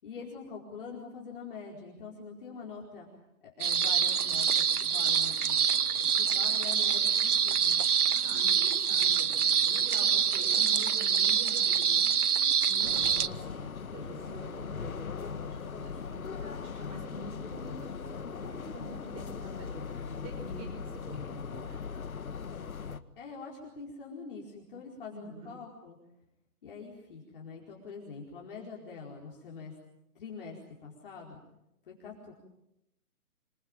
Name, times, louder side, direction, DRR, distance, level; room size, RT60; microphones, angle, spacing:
voice 1, 0.0-3.1 3.6-5.6 6.2-7.9 23.2-26.0 26.6-29.7 30.1-31.4 31.8-32.3, left 5 dB, 35° left, -1 dB, 4.7 m, -44 dB
sound 1, 3.6-13.3, right 7 dB, 75° right, 1.1 m, -26 dB
voice 2, 8.1-12.1 12.7-21.8 25.1-25.5, right 2 dB, 10° right, 3 dB, 5.5 m, -46 dB
sound 2, 12.8-23.0, left 6 dB, 65° left, 1.8 m, -39 dB
26.5 x 22.5 x 9.0 m, 0.86 s
hypercardioid pair, 165°, 45 cm